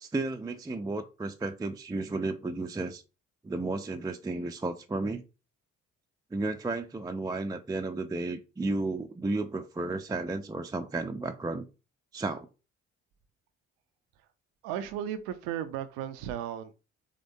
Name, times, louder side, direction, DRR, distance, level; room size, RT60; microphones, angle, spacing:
voice 1, 0.0-3.0 3.4-5.2 6.3-11.7 12.1-12.5, right 2 dB, 10° right, 0.5 m, -33 dB
voice 2, 14.6-16.7, right 10 dB, 75° right, 0.6 m, -35 dB
5.1 x 3.4 x 2.6 m
hypercardioid pair, 45°, 37 cm